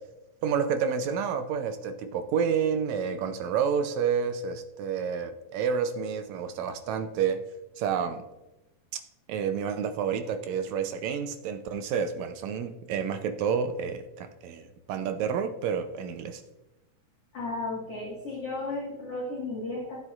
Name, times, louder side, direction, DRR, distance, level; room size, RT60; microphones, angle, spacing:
voice 1, 0.4-7.5 7.8-8.2 9.3-16.4, right 7 dB, 75° right, 7 dB, 1.8 m, -29 dB
voice 2, 17.3-20.0, left 2 dB, 50° left, -6 dB, 2.5 m, -34 dB
16.0 x 7.6 x 2.5 m, 1.0 s
omnidirectional pair, 3.6 m